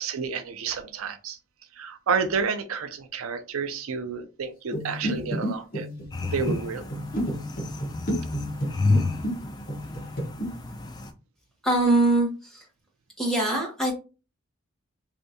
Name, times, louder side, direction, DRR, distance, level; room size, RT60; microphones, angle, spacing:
voice 1, 0.0-1.4 1.8-5.9 6.3-6.8, right 5 dB, 90° right, 0.5 m, -30 dB
sound 1, 4.7-9.4 9.7-10.5, equal, 45° left, 1.2 m, -31 dB
sound 2, 6.1-11.1, left 3 dB, 20° left, 0.3 m, -30 dB
voice 2, 11.6-12.6 13.2-13.9, right 2 dB, 5° left, 1.1 m, -23 dB
3.3 x 2.6 x 2.7 m
head